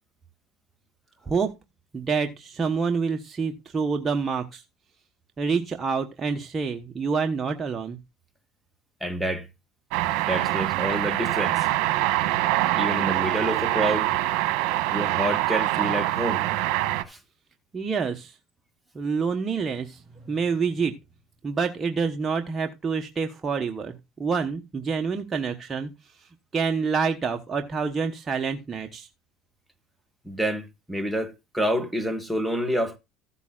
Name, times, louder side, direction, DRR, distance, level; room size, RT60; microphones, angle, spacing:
voice 1, 1.9-4.6 5.4-8.0 17.7-18.3 18.9-20.9 21.4-25.9 26.5-29.1, right 5 dB, 25° right, 1.1 m, -27 dB
voice 2, 9.0-9.5 10.2-11.7 12.8-14.1 14.9-16.5 17.1-17.2 30.2-33.0, right 1 dB, 5° right, 1.6 m, -28 dB
sound 1, 9.9-17.0, right 16 dB, 70° right, 1.2 m, -24 dB
14.5 x 8.2 x 2.4 m
supercardioid pair, 100°, 0 cm